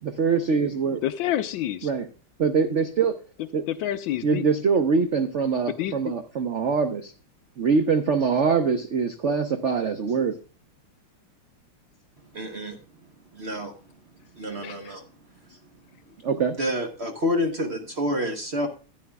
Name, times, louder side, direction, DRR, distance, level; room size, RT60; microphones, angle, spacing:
voice 1, 0.0-1.0 1.8-2.1 2.4-3.2 3.5-3.6 4.2-7.1 7.6-10.4 16.2-16.5, right 5 dB, 75° right, 8 dB, 0.6 m, -23 dB
voice 2, 1.0-1.9 3.7-4.5 5.7-6.1 14.6-14.9, left 12 dB, 70° left, 11 dB, 1.3 m, -28 dB
voice 3, 12.3-12.8 13.3-13.7 14.3-15.0 15.5-15.6 16.6-18.7, left 1 dB, 40° right, 5 dB, 1.0 m, -28 dB
15.0 x 9.5 x 2.2 m, 0.35 s
omnidirectional pair, 2.3 m